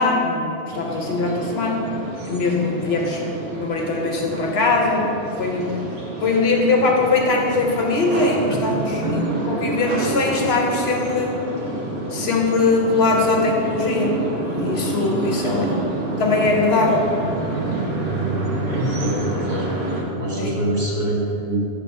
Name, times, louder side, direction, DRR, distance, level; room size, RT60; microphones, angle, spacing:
voice 1, 0.0-1.8 2.3-3.3 3.6-5.1 5.4-5.7 6.2-9.2 9.5-11.4 12.1-14.2 14.4-15.7 16.2-17.1 20.4-20.5, left 3 dB, 65° left, 0 dB, 0.8 m, -21 dB
sound 1, 0.7-20.0, right 2 dB, 85° right, 1.3 m, -28 dB
voice 2, 15.4-15.8 17.7-17.9 18.6-21.6, right 1 dB, 45° right, -4 dB, 1.0 m, -26 dB
5.2 x 3.6 x 5.5 m, 2.9 s
omnidirectional pair, 1.2 m